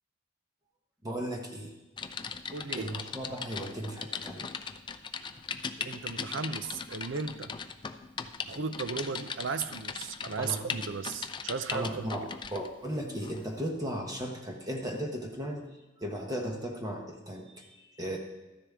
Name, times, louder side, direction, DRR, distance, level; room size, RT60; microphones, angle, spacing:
voice 1, 1.0-1.7 2.8-4.4 5.8-5.9 10.4-10.6 11.7-15.7 16.0-18.2, equal, 20° right, 1 dB, 1.0 m, -36 dB
Typing, 2.0-12.7 13.2-13.4, left 5 dB, 25° left, 0.4 m, -39 dB
voice 2, 2.5-2.9 5.9-7.5 8.5-12.1, right 4 dB, 70° right, 11 dB, 0.6 m, -36 dB
13.0 x 10.0 x 3.6 m, 1.1 s
head